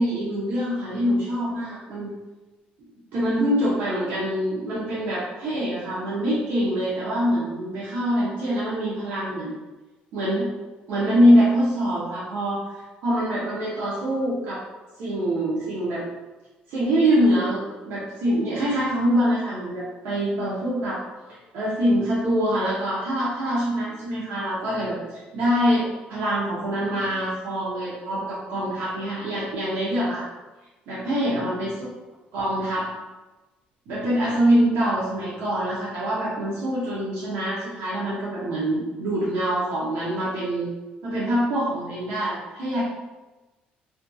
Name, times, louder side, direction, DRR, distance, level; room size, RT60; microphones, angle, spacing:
voice 1, 0.0-2.1 3.1-9.6 10.1-10.5 10.9-12.6 13.0-14.6 15.0-16.0 16.7-21.0 21.5-30.2 30.9-31.7 32.3-32.9 33.9-40.7 41.0-42.8, equal, 75° right, -7 dB, 0.6 m, -24 dB
2.5 x 2.5 x 2.2 m, 1.1 s
cardioid pair, 170°, 4 cm